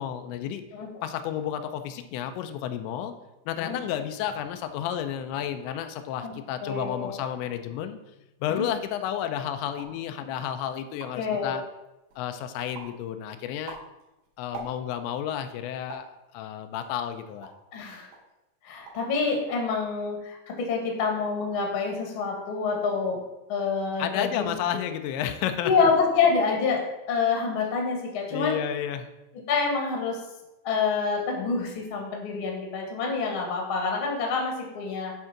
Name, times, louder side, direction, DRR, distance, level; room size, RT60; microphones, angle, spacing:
voice 1, 0.0-0.6 1.0-3.2 3.5-8.0 8.4-11.6 12.2-13.8 14.4-17.5 24.0-25.9 28.3-29.1, left 10 dB, 85° left, 8 dB, 2.9 m, -31 dB
voice 2, 6.6-7.2 8.5-8.7 11.1-11.6 17.7-18.1 18.6-23.2 23.5-24.5 25.6-28.6 29.5-30.2 30.6-35.1, left 5 dB, 55° left, 0 dB, 1.4 m, -27 dB
sound 1, 9.7-10.1 10.6-10.7 10.8-11.4 11.9-12.3 12.7-13.0 13.4-15.1 15.9-16.2 16.8-17.7 18.1-18.3 18.6-19.1 19.4-19.9, right 5 dB, 80° right, 3.7 m, -44 dB
10.5 x 3.7 x 5.8 m, 0.97 s
omnidirectional pair, 5.1 m